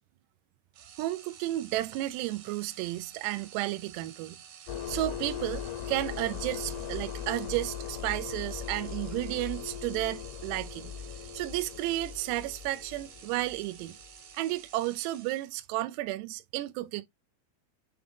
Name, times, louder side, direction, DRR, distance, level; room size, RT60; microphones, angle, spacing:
sound 1, 0.7-15.8, right 8 dB, 65° right, 3.3 m, -51 dB
voice 1, 1.0-4.4 4.9-10.9 11.3-13.9 14.3-17.0, right 17 dB, 85° right, 2.5 m, -32 dB
sound 2, 4.7-14.2, left 8 dB, 80° left, 2.5 m, -39 dB
8.9 x 3.4 x 3.4 m
omnidirectional pair, 5.3 m